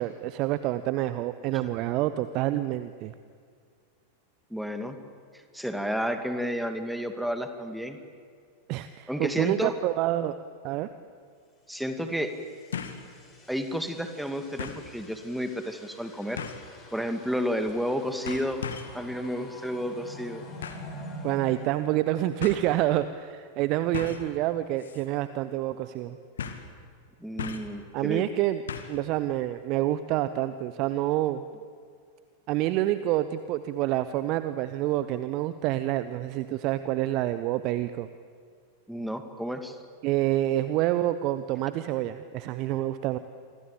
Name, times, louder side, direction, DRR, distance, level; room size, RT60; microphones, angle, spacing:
voice 1, 0.0-3.1 8.7-10.3 10.6-10.9 21.2-26.2 27.9-28.6 28.9-31.4 32.5-38.1 40.0-43.2, right 14 dB, 40° right, 13 dB, 0.9 m, -27 dB
voice 2, 4.5-5.0 5.3-8.0 9.1-9.8 11.7-12.3 13.5-16.4 16.9-18.6 18.9-20.5 27.2-28.3 38.9-39.8, equal, ahead, 7 dB, 2.5 m, -31 dB
sound 1, 10.8-10.9 12.7-13.1 13.5-13.6 14.6-14.9 16.4-16.7 17.7-17.9 18.3-19.0 20.6-20.9 21.9-22.0 22.4-22.6 23.9-24.3 24.8-25.1 25.3-25.4 26.4-26.7 27.4-27.8 28.7-29.0 29.3-29.4, left 7 dB, 65° left, 2.3 m, -37 dB
sound 2, 12.0-22.7, equal, 20° left, 7.5 m, -47 dB
28.0 x 24.0 x 8.7 m, 2.1 s
figure-of-eight pair, 90°, 0 cm